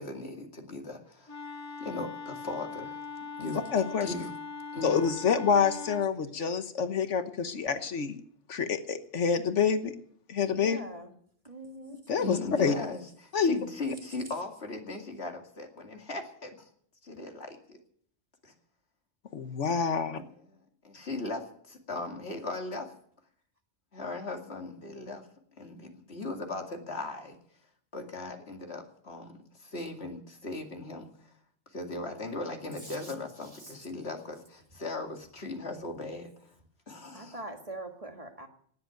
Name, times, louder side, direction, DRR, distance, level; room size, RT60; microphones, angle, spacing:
voice 1, 0.0-1.4 1.8-3.0 3.4-3.6 4.0-4.3 4.7-5.0 12.1-16.6 17.0-17.8 18.4-18.5 20.8-22.9 23.9-25.3 25.6-27.4 27.9-31.3 31.7-36.5 36.9-37.4, left 2 dB, 60° left, 3 dB, 2.6 m, -38 dB
Wind instrument woodwind instrument, 1.3-6.1, left 4 dB, 15° left, 0.8 m, -41 dB
voice 2, 3.7-4.1 4.8-8.2 8.5-9.9 10.3-10.8 12.1-12.7 13.3-13.5 19.3-20.2, left 6 dB, 85° left, 10 dB, 1.4 m, -27 dB
voice 3, 10.6-11.1 11.5-12.0 32.8-33.1 33.6-33.7 37.1-38.5, right 2 dB, 30° right, 4 dB, 1.9 m, -43 dB
19.0 x 7.9 x 9.2 m, 0.63 s
omnidirectional pair, 1.2 m